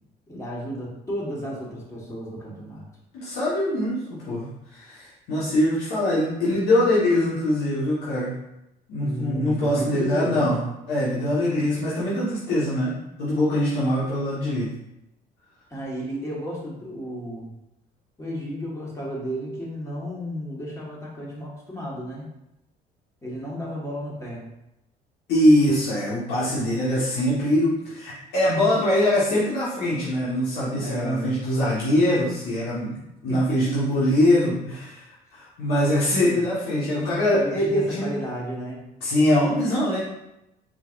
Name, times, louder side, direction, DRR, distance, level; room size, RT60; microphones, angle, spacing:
voice 1, 0.3-2.8 9.0-10.6 15.7-17.5 18.2-22.3 23.2-24.4 26.4-27.0 30.7-31.4 33.3-33.7 36.1-36.4 37.3-38.8, equal, 15° left, -4 dB, 1.6 m, -33 dB
voice 2, 3.1-8.3 8.9-10.6 10.9-14.7 25.3-38.1 39.0-40.0, left 1 dB, 85° left, -8 dB, 1.4 m, -23 dB
4.5 x 4.0 x 2.5 m, 0.88 s
cardioid pair, 110°, 17 cm